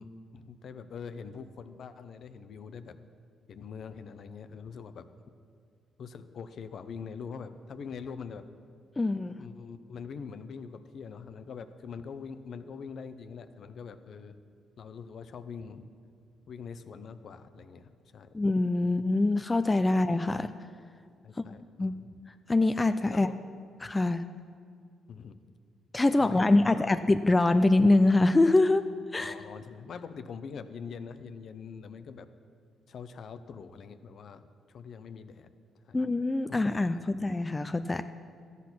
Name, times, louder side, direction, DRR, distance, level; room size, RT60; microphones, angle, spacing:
voice 1, 0.0-3.0 3.5-5.1 6.0-8.5 9.4-14.4 14.8-15.8 16.5-18.3 18.8-18.9 21.2-22.1 23.1-23.4 25.1-25.3 26.2-27.0 29.2-32.3 32.9-34.4 34.7-35.5 35.8-36.0 36.5-36.6 36.9-37.2, left 6 dB, 60° left, 11 dB, 0.7 m, -43 dB
voice 2, 9.0-9.4 18.3-20.5 21.8-21.9 22.5-23.3 23.8-24.2 25.9-28.8 29.1-29.3 35.9-38.0, left 2 dB, 20° left, 10 dB, 0.4 m, -24 dB
13.5 x 8.3 x 6.0 m, 2.2 s
cardioid pair, 90°, 0 cm